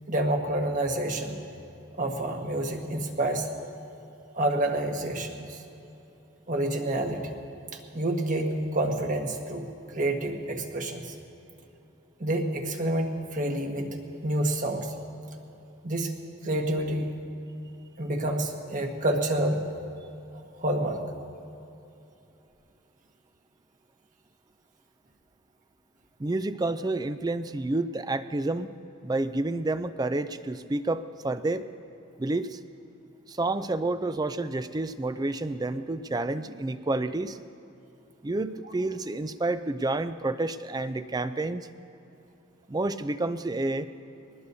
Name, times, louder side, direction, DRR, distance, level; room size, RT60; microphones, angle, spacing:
voice 1, 0.1-1.4 2.0-3.5 4.3-5.6 6.5-7.3 7.9-9.7 9.9-11.1 12.2-14.9 15.8-16.1 16.4-17.1 18.0-19.7 20.6-21.0, right 1 dB, 40° right, 3 dB, 1.4 m, -28 dB
voice 2, 26.2-28.7 29.0-31.7 32.2-32.6 33.3-37.4 38.2-41.7 42.7-43.9, right 2 dB, 20° right, 12 dB, 0.4 m, -29 dB
22.5 x 19.5 x 2.7 m, 2.9 s
head